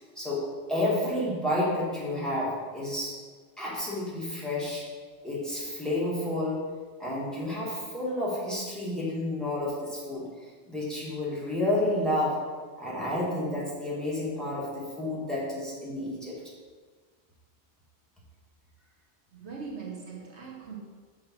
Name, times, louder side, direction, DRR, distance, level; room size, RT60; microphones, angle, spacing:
voice 1, 0.2-3.2 3.6-4.9 5.2-6.7 7.0-10.3 10.7-12.4 12.8-16.3, left 1 dB, ahead, -6 dB, 1.8 m, -30 dB
voice 2, 19.3-20.8, right 5 dB, 70° right, -1 dB, 1.2 m, -40 dB
6.5 x 3.9 x 6.0 m, 1.5 s
omnidirectional pair, 1.2 m